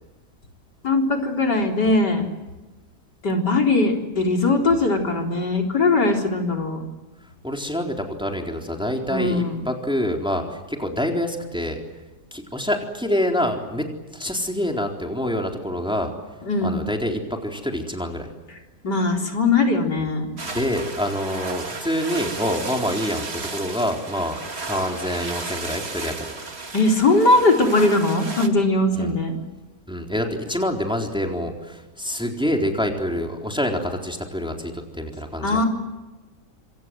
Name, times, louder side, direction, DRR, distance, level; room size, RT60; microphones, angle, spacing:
voice 1, 0.8-2.2 3.2-6.8 9.1-9.6 16.5-16.8 18.8-20.3 26.7-29.4 35.4-35.6, left 2 dB, 70° left, 2 dB, 4.5 m, -20 dB
voice 2, 7.4-11.8 12.3-13.9 14.1-16.1 16.6-18.3 20.5-26.3 28.9-29.2 29.9-35.6, left 1 dB, 5° right, 2 dB, 3.9 m, -26 dB
sound 1, 20.4-28.5, right 3 dB, 35° right, 2.3 m, -34 dB
27.0 x 26.5 x 7.8 m, 1.1 s
omnidirectional pair, 1.8 m